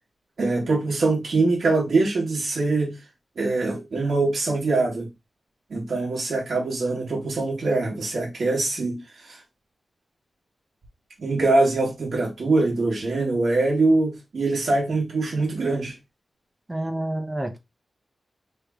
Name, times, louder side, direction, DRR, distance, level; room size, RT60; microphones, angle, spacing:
voice 1, 0.4-3.0 3.4-5.1 5.7-9.4 11.2-15.9, right 3 dB, 65° right, 1.4 m, -23 dB
voice 2, 16.7-17.6, right 1 dB, 15° right, 0.7 m, -28 dB
3.3 x 2.8 x 3.5 m
wide cardioid pair, 125°, 0 cm